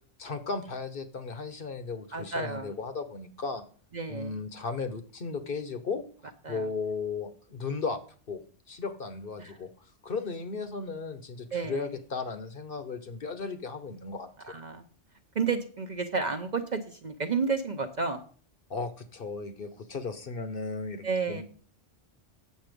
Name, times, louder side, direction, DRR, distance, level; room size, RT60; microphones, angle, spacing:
voice 1, 0.2-3.6 4.1-6.0 6.5-8.0 8.3-8.4 8.7-9.7 10.0-14.6 18.7-21.4, left 4 dB, 50° left, 10 dB, 1.0 m, -35 dB
voice 2, 2.1-2.7 3.9-4.4 6.4-6.7 9.4-9.6 11.5-11.9 14.4-14.8 15.3-18.2 21.0-21.4, right 4 dB, 45° right, 6 dB, 0.7 m, -31 dB
8.4 x 6.9 x 5.1 m, 0.42 s
omnidirectional pair, 1.2 m